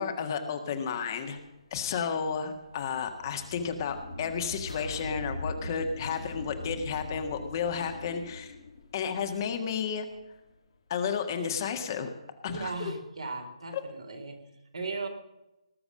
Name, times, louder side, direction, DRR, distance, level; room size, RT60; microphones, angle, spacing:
voice 1, 0.0-1.4 1.7-8.5 8.9-10.1 10.9-12.1 12.4-12.9 13.7-13.8, left 6 dB, 40° left, 6 dB, 1.7 m, -32 dB
sound 1, 1.4-10.4, left 2 dB, 60° left, 1.7 m, -42 dB
sound 2, 4.7-5.7 6.1-7.1 7.8-8.8, left 2 dB, 75° left, 4.0 m, -52 dB
voice 2, 12.5-14.4 14.7-15.1, right 3 dB, 70° right, 3 dB, 3.6 m, -37 dB
19.0 x 7.0 x 7.6 m, 0.95 s
figure-of-eight pair, 140°, 3 cm